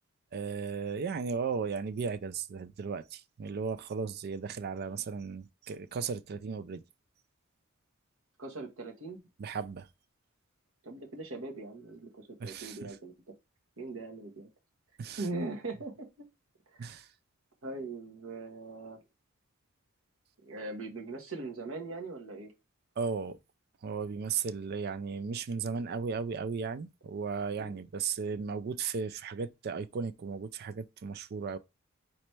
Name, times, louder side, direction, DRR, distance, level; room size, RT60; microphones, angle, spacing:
voice 1, 0.3-6.8 9.4-9.9 12.4-13.0 15.0-15.3 16.8-17.1 23.0-23.4 23.8-31.6, right 5 dB, 50° right, 0.4 m, -35 dB
voice 2, 8.4-9.2 10.8-13.1 13.8-14.5 15.2-16.1 16.7-16.9 17.6-19.0 20.4-22.5 27.6-27.8, right 2 dB, 80° right, 1.3 m, -40 dB
4.2 x 3.0 x 3.2 m
head